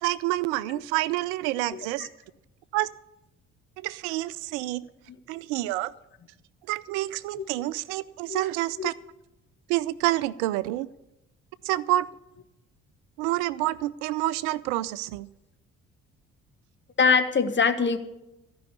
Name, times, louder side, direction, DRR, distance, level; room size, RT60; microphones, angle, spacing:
voice 1, 0.0-2.1 2.7-2.9 3.8-4.8 5.3-5.9 6.7-8.9 9.7-10.9 11.6-12.1 13.2-15.3, right 16 dB, 60° right, 19 dB, 0.5 m, -28 dB
voice 2, 17.0-18.0, left 5 dB, 30° left, 9 dB, 1.2 m, -22 dB
14.5 x 5.4 x 9.5 m, 0.91 s
figure-of-eight pair, 45°, 39 cm